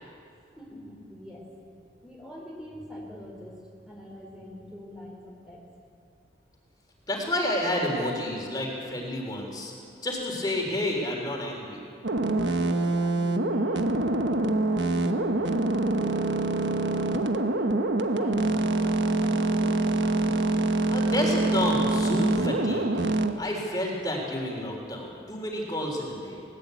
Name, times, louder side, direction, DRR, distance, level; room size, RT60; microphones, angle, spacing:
voice 1, 0.5-1.5 2.0-5.6 12.7-17.8 18.1-19.7, equal, 5° right, -2 dB, 3.2 m, -44 dB
voice 2, 7.1-9.7 10.0-11.8 20.9-22.9 23.4-26.4, left 1 dB, 20° left, 0 dB, 3.5 m, -30 dB
sound 1, 12.0-23.3, right 2 dB, 85° right, 1.2 m, -25 dB
19.5 x 19.0 x 8.4 m, 2.4 s
head